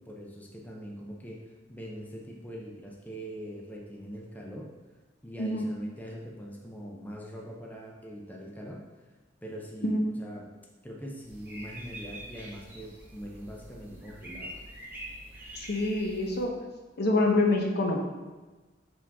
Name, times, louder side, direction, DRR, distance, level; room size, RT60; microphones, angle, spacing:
voice 1, 0.1-1.4 1.7-4.7 5.2-8.8 9.4-9.9 10.2-10.5 10.8-14.5, equal, 10° left, -2 dB, 0.7 m, -42 dB
voice 2, 5.4-5.7 9.8-10.1 15.5-16.5 17.0-18.0, left 2 dB, 60° left, 1 dB, 0.9 m, -26 dB
sound 1, 11.2-16.4, right 1 dB, 10° right, 1.1 m, -45 dB
5.6 x 5.0 x 3.5 m, 1.2 s
head